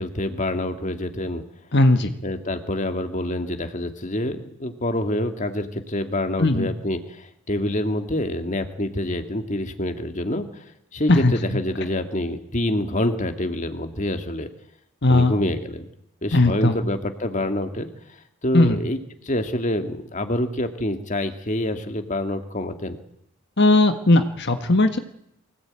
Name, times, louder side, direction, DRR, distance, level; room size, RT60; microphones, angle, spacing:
voice 1, 0.0-1.4 2.2-10.6 10.9-14.5 15.1-15.9 16.2-17.9 18.4-19.0 19.2-23.0, left 1 dB, 35° left, 6 dB, 2.1 m, -26 dB
voice 2, 1.7-2.1 6.4-6.7 11.1-11.3 15.0-15.3 16.3-16.8 18.5-18.8 23.6-25.0, left 2 dB, 50° left, 7 dB, 1.6 m, -17 dB
24.0 x 17.5 x 9.0 m, 0.75 s
head